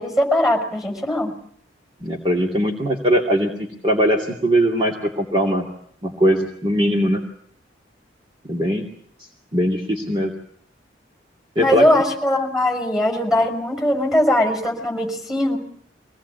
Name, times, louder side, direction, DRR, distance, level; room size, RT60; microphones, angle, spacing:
voice 1, 0.0-1.3 11.6-15.6, left 1 dB, 5° right, 3 dB, 5.8 m, -20 dB
voice 2, 2.0-3.5 3.8-5.7 6.0-7.2 8.4-8.9 9.5-10.3 11.6-11.8, equal, 30° right, 0 dB, 2.5 m, -20 dB
24.0 x 19.0 x 8.3 m, 0.64 s
head